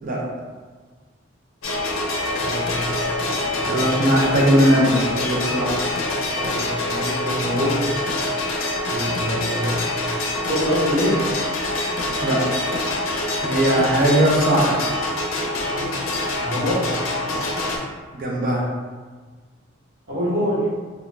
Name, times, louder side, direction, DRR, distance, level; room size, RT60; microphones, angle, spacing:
sound 1, 1.6-17.8, left 2 dB, 85° left, 0.5 m, -25 dB
voice 1, 2.3-2.9 3.5-3.8 6.3-7.9 8.9-9.8 10.5-11.3 16.4-16.9 20.1-20.7, equal, 60° right, -8 dB, 1.1 m, -25 dB
voice 2, 3.7-5.7 12.2-12.4 13.4-14.8 18.1-18.7, right 1 dB, 45° right, -3 dB, 0.5 m, -19 dB
2.4 x 2.2 x 3.1 m, 1.4 s
head